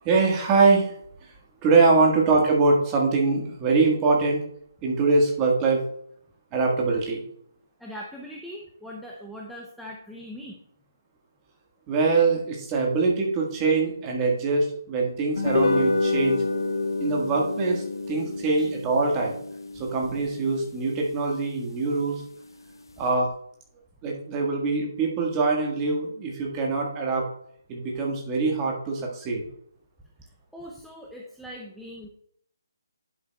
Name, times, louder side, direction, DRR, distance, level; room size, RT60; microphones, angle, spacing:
voice 1, 0.0-0.9 1.6-4.4 4.8-5.8 6.5-7.2 11.9-16.4 17.0-19.4 19.7-22.2 23.0-23.3 24.0-27.3 27.7-29.5, right 3 dB, 20° right, -1 dB, 1.6 m, -23 dB
voice 2, 7.8-10.6 18.6-18.7 30.2-32.1, equal, ahead, -3 dB, 0.6 m, -41 dB
sound 1, 15.4-21.9, left 3 dB, 80° left, 0.7 m, -28 dB
11.0 x 7.1 x 2.3 m, 0.66 s
hypercardioid pair, 160°, 2 cm